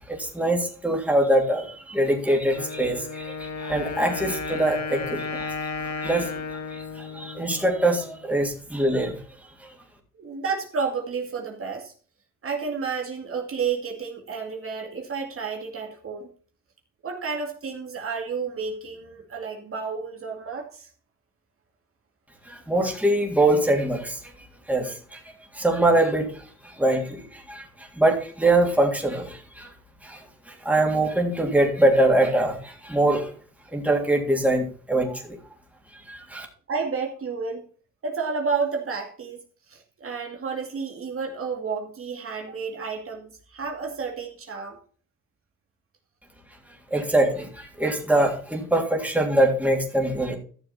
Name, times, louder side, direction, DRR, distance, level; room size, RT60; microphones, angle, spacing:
voice 1, 0.1-5.5 6.0-6.3 6.7-9.2 9.6-9.7 22.5-24.2 24.7-25.2 25.5-26.3 26.6-29.7 30.0-33.3 33.7-35.4 36.1-36.5 46.9-50.4, right 1 dB, 5° right, 1 dB, 3.3 m, -23 dB
Wind instrument woodwind instrument, 2.5-8.3, left 4 dB, 60° left, 2.1 m, -33 dB
voice 2, 10.1-11.9 12.4-16.3 17.0-20.9 36.7-37.7 38.0-39.4 39.7-44.8, right 5 dB, 45° right, 2 dB, 2.4 m, -31 dB
13.5 x 6.8 x 4.4 m, 0.42 s
cardioid pair, 90°, 30 cm